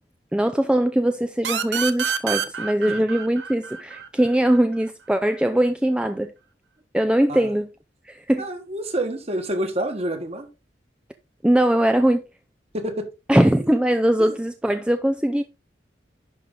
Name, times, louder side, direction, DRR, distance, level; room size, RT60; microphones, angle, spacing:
voice 1, 0.3-6.3 6.9-7.7 8.1-8.4 11.4-12.2 13.3-15.4, right 1 dB, 5° right, 0.4 m, -21 dB
sound 1, 1.4-4.8, right 7 dB, 80° right, 0.9 m, -28 dB
voice 2, 8.4-10.5 12.7-13.1 14.2-14.4, right 1 dB, 35° right, 1.5 m, -28 dB
11.0 x 4.8 x 3.8 m
head